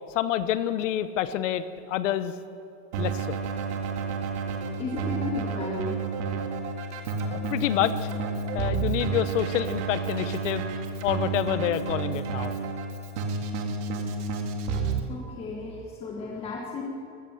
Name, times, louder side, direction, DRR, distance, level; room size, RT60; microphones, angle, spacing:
voice 1, 0.1-2.3 3.0-3.4 7.2-8.1 8.5-10.7 11.0-12.5, left 11 dB, 80° left, 13 dB, 1.0 m, -28 dB
Keyboard (musical), 2.9-15.0, right 5 dB, 70° right, 2.1 m, -30 dB
voice 2, 4.8-6.0 15.1-16.8, left 4 dB, 15° left, -1 dB, 1.3 m, -34 dB
14.5 x 13.5 x 6.5 m, 2.5 s
supercardioid pair, 165°, 37 cm